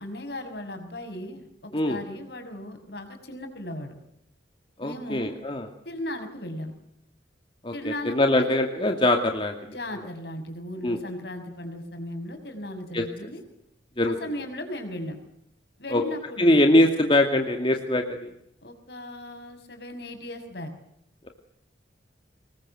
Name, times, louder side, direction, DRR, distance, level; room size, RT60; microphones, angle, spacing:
voice 1, 0.0-3.9 4.8-5.3 5.8-6.7 7.7-8.5 9.6-13.4 14.2-15.2 15.8-16.7 18.6-20.7, left 1 dB, 65° left, 6 dB, 6.2 m, -37 dB
voice 2, 4.8-5.7 7.6-9.5 10.8-11.0 12.9-13.0 14.0-14.2 15.9-16.0 16.4-18.3, left 1 dB, 30° left, 4 dB, 2.4 m, -22 dB
26.0 x 21.5 x 7.9 m, 0.75 s
head